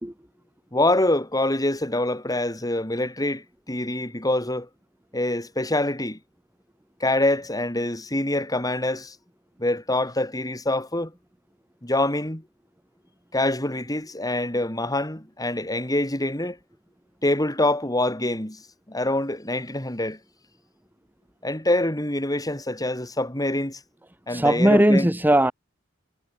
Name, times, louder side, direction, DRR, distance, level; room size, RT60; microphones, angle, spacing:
voice 1, 0.7-4.7 5.1-6.2 7.0-9.2 9.6-11.1 11.8-12.4 13.3-16.6 17.2-18.6 18.9-20.2 21.4-23.8 24.3-25.1, left 1 dB, 20° left, 5.6 m, -25 dB
voice 2, 24.3-25.5, right 1 dB, 10° right, 1.6 m, -18 dB
head